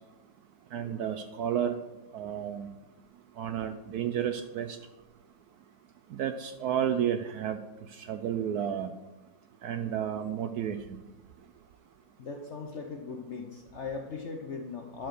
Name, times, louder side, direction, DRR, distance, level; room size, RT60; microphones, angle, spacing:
voice 1, 0.7-1.7 2.1-2.7 3.4-4.8 6.1-7.6 8.0-8.9 9.6-11.0, right 9 dB, 70° right, 8 dB, 0.9 m, -31 dB
voice 2, 12.2-15.1, left 4 dB, 55° left, 3 dB, 0.8 m, -39 dB
11.0 x 4.8 x 6.4 m, 1.1 s
omnidirectional pair, 2.0 m